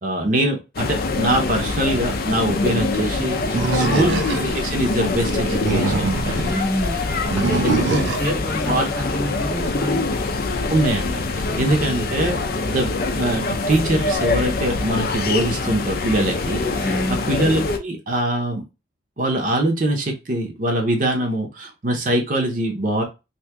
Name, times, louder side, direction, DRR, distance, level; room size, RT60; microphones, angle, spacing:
voice 1, 0.0-6.5 7.6-8.4 8.6-8.9 10.7-16.9 17.3-18.6 19.2-23.0, right 1 dB, 45° right, 0.7 m, -23 dB
sound 1, 0.7-17.8, left 3 dB, 55° left, 0.5 m, -24 dB
voice 2, 3.5-4.1 6.4-10.1 11.5-11.8 16.8-17.3, equal, 5° left, 0.8 m, -28 dB
Animal, 3.5-4.7 5.4-6.5 7.3-8.3, right 4 dB, 85° right, 0.4 m, -24 dB
2.9 x 2.7 x 3.4 m
head